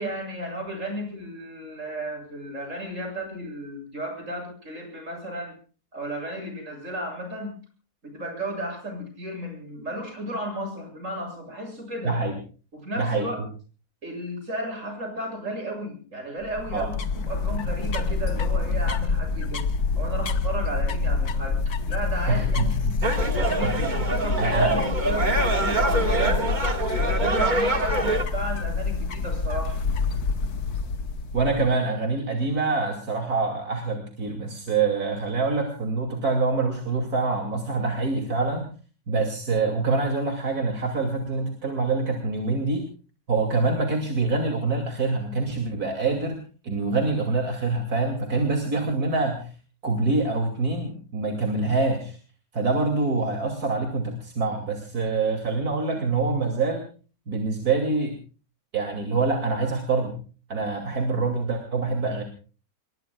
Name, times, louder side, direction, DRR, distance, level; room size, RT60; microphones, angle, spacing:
voice 1, 0.0-5.6 5.9-7.6 8.0-12.1 12.7-13.4 14.0-19.6 20.0-21.6 21.9-22.7 23.3-26.5 27.0-29.8, right 1 dB, 55° right, 3 dB, 8.0 m, -34 dB
voice 2, 12.0-12.4 13.0-13.3 16.7-16.9 22.3-23.0 23.6-24.1 24.4-24.7 31.3-38.7 39.1-42.8 43.3-46.4 46.6-49.5 49.8-52.2 52.5-56.8 57.3-58.2 58.7-60.1 60.5-62.2, right 3 dB, 80° right, 3 dB, 3.2 m, -25 dB
sound 1, 16.4-31.7, left 4 dB, 80° left, 1.8 m, -27 dB
sound 2, 23.0-28.2, right 2 dB, 30° right, 1.9 m, -25 dB
27.5 x 22.0 x 2.4 m, 0.39 s
omnidirectional pair, 1.6 m